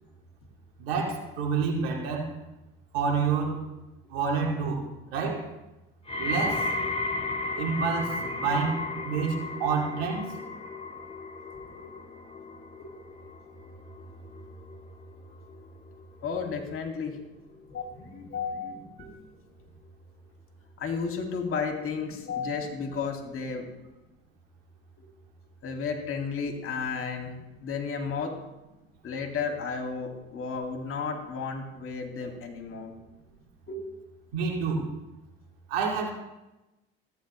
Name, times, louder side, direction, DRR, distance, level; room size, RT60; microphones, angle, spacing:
voice 1, 0.8-2.3 2.9-3.7 4.1-5.5 6.2-6.7 7.6-10.3 34.3-34.9 35.7-36.1, right 5 dB, 80° right, 1 dB, 2.3 m, -28 dB
sound 1, 6.1-17.2 17.5-18.0 18.7-18.8, left 2 dB, 20° left, 1.1 m, -35 dB
voice 2, 16.2-17.2 17.7-19.1 20.8-23.7 25.0-25.1 25.6-27.3 27.6-28.4 29.0-32.9 33.7-33.9, left 5 dB, 45° left, 3 dB, 2.4 m, -33 dB
15.0 x 9.3 x 3.2 m, 1.0 s
hypercardioid pair, 70°, 30 cm